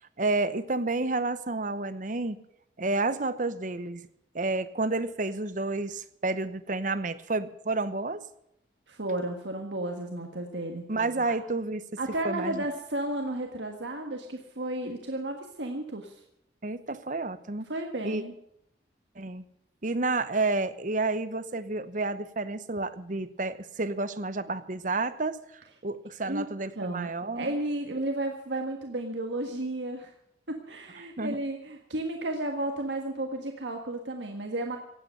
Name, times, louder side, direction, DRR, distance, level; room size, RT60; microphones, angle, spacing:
voice 1, 0.2-2.4 2.8-4.1 4.3-8.3 10.9-11.9 12.2-12.6 16.6-17.7 18.0-18.2 19.2-19.4 19.8-27.5 31.2-31.4, right 3 dB, 45° right, 14 dB, 0.9 m, -30 dB
voice 2, 8.9-10.8 11.3-11.4 12.0-16.2 17.7-18.3 26.2-26.5 26.7-27.1 27.4-30.1 30.5-34.8, right 1 dB, 85° right, 3 dB, 1.6 m, -33 dB
17.0 x 8.9 x 7.9 m, 0.77 s
head